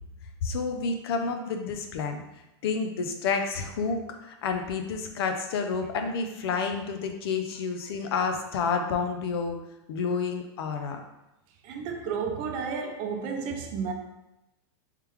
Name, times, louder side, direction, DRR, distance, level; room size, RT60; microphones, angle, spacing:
voice 1, 0.4-2.2 2.6-9.6 9.9-11.0, left 5 dB, 70° left, 0.6 m, -29 dB
voice 2, 11.6-13.9, right 5 dB, 40° right, 0.6 m, -32 dB
3.4 x 3.3 x 3.2 m
supercardioid pair, 155°, 13 cm